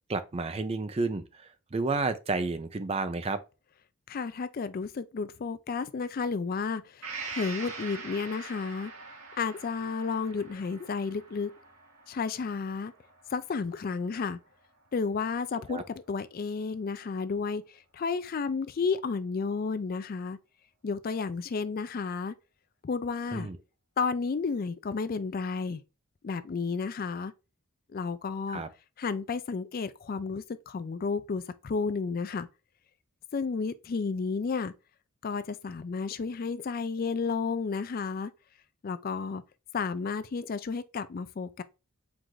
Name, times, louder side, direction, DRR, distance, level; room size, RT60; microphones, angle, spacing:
voice 1, 0.1-3.4 15.7-15.8 23.3-23.6 28.5-28.7, right 3 dB, 25° right, 0.4 m, -31 dB
voice 2, 4.1-8.9 9.4-11.5 12.1-12.9 13.3-14.4 14.9-20.4 20.8-22.4 22.8-23.5 24.0-25.8 26.2-27.3 27.9-28.6 29.0-32.5 33.3-34.7 35.2-38.3 38.8-39.4 39.7-41.6, left 5 dB, 40° left, 0.3 m, -32 dB
Gong, 7.0-14.7 15.0-15.1, right 4 dB, 70° right, 1.8 m, -44 dB
4.6 x 2.5 x 3.8 m
head